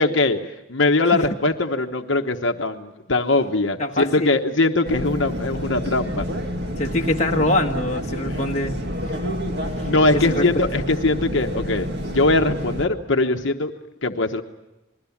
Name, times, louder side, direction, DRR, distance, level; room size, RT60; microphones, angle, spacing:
voice 1, 0.0-6.3 8.3-8.4 9.9-13.7 14.0-14.4, left 2 dB, 65° left, 4 dB, 1.1 m, -21 dB
voice 2, 3.8-4.3 6.8-8.8 9.8-10.5, left 1 dB, 35° left, 1 dB, 1.5 m, -24 dB
sound 1, 4.8-12.9, equal, 55° right, 2.2 m, -28 dB
28.0 x 21.0 x 7.2 m, 1.0 s
head